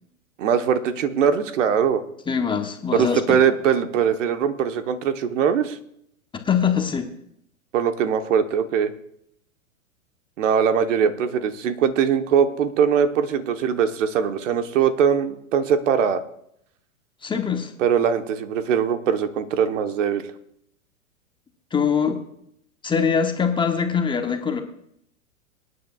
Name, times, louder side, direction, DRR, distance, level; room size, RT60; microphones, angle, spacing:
voice 1, 0.4-2.0 2.9-5.8 7.7-8.9 10.4-16.2 17.8-20.3, right 7 dB, 60° right, 9 dB, 1.2 m, -21 dB
voice 2, 2.3-3.4 6.4-7.1 17.2-17.7 21.7-22.2 22.8-24.6, left 6 dB, 10° left, 5 dB, 1.0 m, -23 dB
25.0 x 9.5 x 2.4 m, 0.72 s
hypercardioid pair, 115°, 42 cm